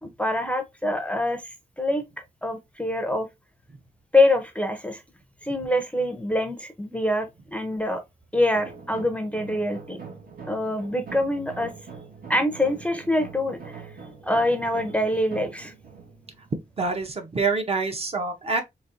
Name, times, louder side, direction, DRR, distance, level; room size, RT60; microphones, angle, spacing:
voice 1, 0.0-3.3 4.1-5.0 5.4-8.0 8.3-10.0 10.5-11.7 12.3-13.9 14.2-15.7, left 1 dB, 10° left, 0.5 m, -25 dB
sound 1, 8.5-17.3, right 5 dB, 65° right, 1.3 m, -43 dB
voice 2, 16.8-18.6, right 4 dB, 40° right, 0.7 m, -26 dB
4.0 x 3.0 x 2.5 m
wide cardioid pair, 160°, 16 cm